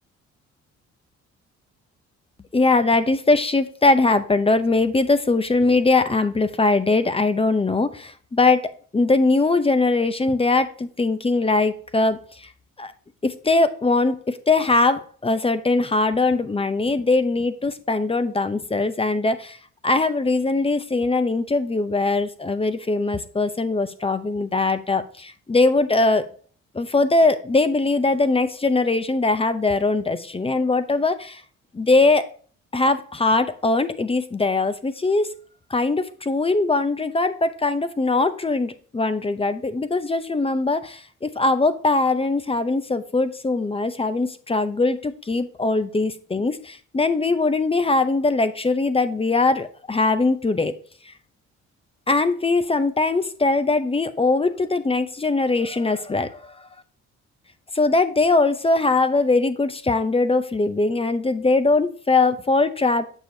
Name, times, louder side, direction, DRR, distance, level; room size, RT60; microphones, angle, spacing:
voice 1, 2.5-12.5 12.8-12.9 13.2-19.6 19.8-26.3 26.7-31.4 31.7-32.3 32.7-35.3 35.7-50.7 51.1-51.2 52.1-56.6 57.7-63.2, left 3 dB, 20° left, 12 dB, 0.6 m, -21 dB
6.9 x 6.0 x 2.7 m, 0.43 s
cardioid pair, 90°, 30 cm